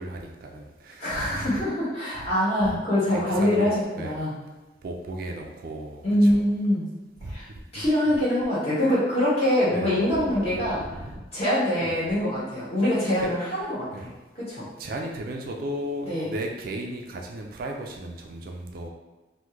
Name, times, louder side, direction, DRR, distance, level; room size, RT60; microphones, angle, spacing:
voice 1, 0.0-1.5 2.6-2.8 3.1-3.7 4.0-4.2 4.8-6.4 7.2-7.8 9.7-10.1 10.9-11.2 11.8-12.0 13.2-13.3 13.9-14.1 14.8-18.9, right 1 dB, 55° right, 1 dB, 0.4 m, -35 dB
voice 2, 1.0-4.3 6.0-6.9 7.3-7.4 7.7-10.8 11.3-14.7 16.1-16.3, left 1 dB, 35° left, -10 dB, 1.4 m, -24 dB
3.0 x 2.2 x 3.5 m, 1.1 s
head